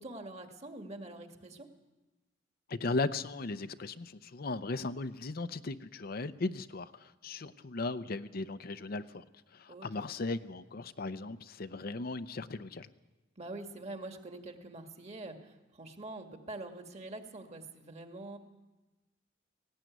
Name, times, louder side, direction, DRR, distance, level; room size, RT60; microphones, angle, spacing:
voice 1, 0.0-1.7 9.7-10.1 13.4-18.4, right 2 dB, 35° right, 5 dB, 1.9 m, -45 dB
voice 2, 2.7-9.2 9.5-12.9, left 3 dB, 55° left, 11 dB, 0.7 m, -37 dB
18.0 x 17.0 x 9.3 m, 1.1 s
head